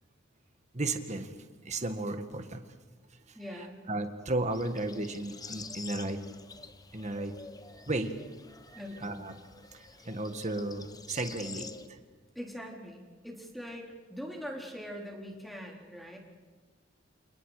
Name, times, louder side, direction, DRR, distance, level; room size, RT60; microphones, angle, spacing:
voice 1, 0.7-2.6 3.9-6.2 6.9-7.3 7.8-8.1 8.5-8.6 9.0-9.3 9.7-12.0, right 2 dB, 40° right, 7 dB, 1.9 m, -34 dB
voice 2, 3.4-3.8 8.8-9.4 12.4-16.2, equal, ahead, 0 dB, 3.8 m, -42 dB
sound 1, 4.5-11.9, left 4 dB, 20° left, 1.0 m, -48 dB
30.0 x 28.0 x 5.1 m, 1.3 s
head